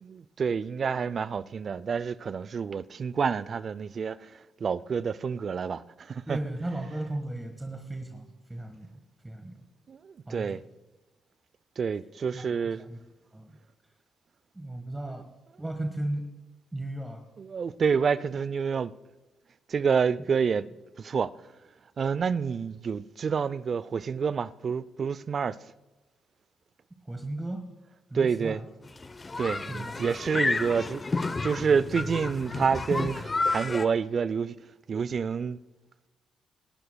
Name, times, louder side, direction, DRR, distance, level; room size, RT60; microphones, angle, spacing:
voice 1, 0.0-4.3 4.6-6.4 9.9-10.6 11.8-12.8 17.4-18.9 19.7-20.7 21.0-21.3 22.0-25.6 28.1-28.6 29.4-31.0 31.4-34.6 34.9-35.6, right 6 dB, 50° right, 0.5 m, -28 dB
voice 2, 6.3-8.9 9.2-9.7 10.3-10.6 12.3-13.0 13.3-13.6 14.5-15.2 15.6-16.3 16.7-17.2 27.0-27.7 28.1-28.6 29.7-29.9, right 1 dB, 15° right, 1.5 m, -35 dB
sound 1, 28.8-33.9, left 3 dB, 30° left, 0.8 m, -31 dB
26.0 x 12.0 x 2.3 m
hypercardioid pair, 50°, 0 cm